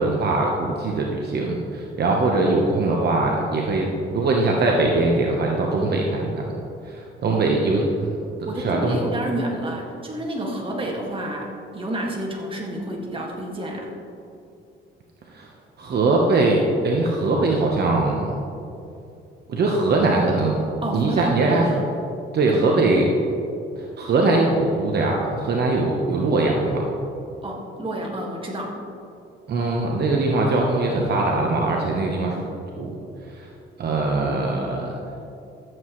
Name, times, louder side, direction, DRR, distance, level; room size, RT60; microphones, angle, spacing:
voice 1, 0.0-6.6 6.8-8.2 8.5-9.0 15.3-15.5 15.8-18.4 19.5-20.6 20.9-21.7 22.3-23.1 23.8-26.8 29.5-32.4 32.8-32.9 33.3-33.5 33.8-34.9, right 2 dB, 55° right, -1 dB, 1.1 m, -21 dB
voice 2, 8.4-13.9 20.8-21.8 22.5-22.7 27.4-28.8, right 1 dB, 25° right, -1 dB, 2.0 m, -29 dB
14.0 x 7.9 x 3.2 m, 2.6 s
cardioid pair, 90°, 20 cm